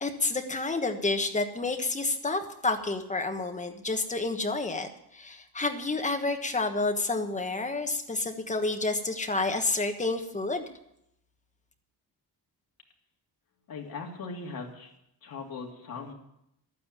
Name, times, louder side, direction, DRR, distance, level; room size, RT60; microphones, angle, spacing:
voice 1, 0.0-4.9 5.1-10.6, left 3 dB, 20° left, 5 dB, 1.2 m, -29 dB
voice 2, 13.7-14.9 15.2-16.1, left 4 dB, 60° left, 0 dB, 2.6 m, -39 dB
12.0 x 9.5 x 7.3 m, 0.77 s
wide cardioid pair, 175°, 39 cm